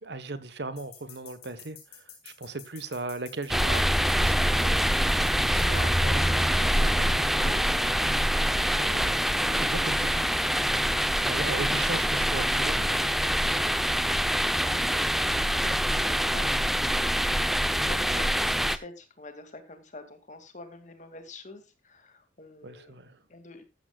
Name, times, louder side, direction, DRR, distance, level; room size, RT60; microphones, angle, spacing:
voice 1, 0.0-4.9 5.4-7.9 8.6-13.4 22.6-23.2, right 2 dB, 60° right, 1.2 m, -38 dB
sound 1, 0.8-6.0, left 9 dB, 55° left, 4.9 m, -49 dB
sound 2, 3.5-18.8, equal, ahead, 0.6 m, -25 dB
voice 2, 11.5-11.9 14.5-16.7 17.0-17.3 17.6-23.0 23.3-23.7, left 2 dB, 40° left, 2.3 m, -46 dB
14.5 x 13.0 x 2.4 m
head